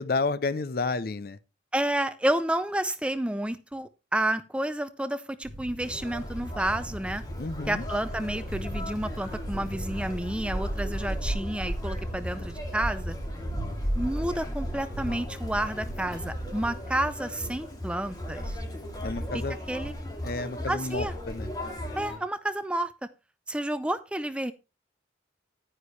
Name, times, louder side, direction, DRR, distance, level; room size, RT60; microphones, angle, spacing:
voice 1, 0.0-1.4 7.4-7.8 19.0-19.6 20.2-21.5, left 3 dB, 50° left, 0.5 m, -30 dB
voice 2, 1.7-7.2 7.7-13.2 13.9-18.6 19.3-19.9 20.7-21.1 22.0-23.1 23.5-24.5, right 1 dB, 5° right, 0.5 m, -30 dB
sound 1, 5.4-16.8, equal, 85° left, 6.0 m, -39 dB
Conversation, 5.8-22.2, equal, 20° left, 2.3 m, -36 dB
10.0 x 9.6 x 3.2 m
head